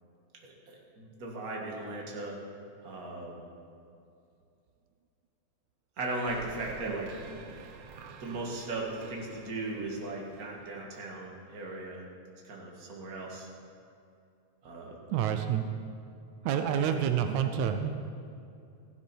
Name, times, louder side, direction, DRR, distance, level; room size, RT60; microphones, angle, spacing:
voice 1, 0.4-2.4 2.8-3.4 6.0-7.5 8.2-12.0 12.4-13.5 14.6-15.0 16.7-16.9, right 2 dB, 35° right, -1 dB, 2.1 m, -38 dB
sound 1, 6.3-11.7, right 5 dB, 70° right, 1.7 m, -50 dB
voice 2, 15.1-15.6 16.4-17.9, right 9 dB, 85° right, 7 dB, 2.1 m, -28 dB
15.0 x 12.0 x 4.5 m, 2.5 s
omnidirectional pair, 3.3 m